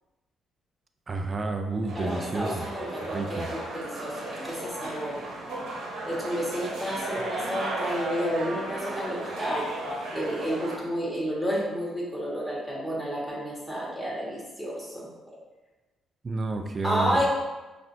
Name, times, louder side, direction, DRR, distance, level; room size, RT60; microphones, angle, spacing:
voice 1, 1.1-2.7 3.1-3.5 16.2-17.3, right 3 dB, 35° right, 5 dB, 0.4 m, -30 dB
voice 2, 1.9-5.2 6.1-9.7 10.1-15.4 16.8-17.3, equal, 5° left, -6 dB, 1.5 m, -31 dB
sound 1, 1.9-10.8, right 1 dB, 80° right, 1.1 m, -35 dB
5.5 x 2.5 x 2.7 m, 1.1 s
cardioid pair, 90°, 0 cm